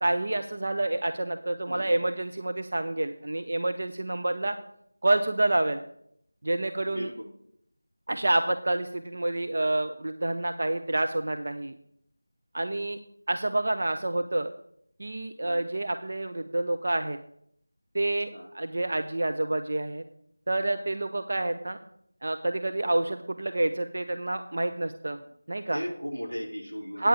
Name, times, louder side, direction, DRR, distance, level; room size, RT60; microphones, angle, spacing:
voice 1, 0.0-4.6 5.0-5.8 6.4-7.1 8.1-11.7 12.5-13.0 13.3-14.5 15.0-17.2 17.9-18.3 18.5-20.0 20.5-21.8 22.2-25.2 25.5-25.8 27.0-27.1, right 2 dB, 45° right, 7 dB, 0.6 m, -28 dB
voice 2, 1.7-2.0 6.9-7.2 15.4-15.7 18.3-18.5 25.7-27.1, equal, 85° right, -4 dB, 4.6 m, -36 dB
15.5 x 9.0 x 3.3 m, 0.70 s
figure-of-eight pair, 170°, 0 cm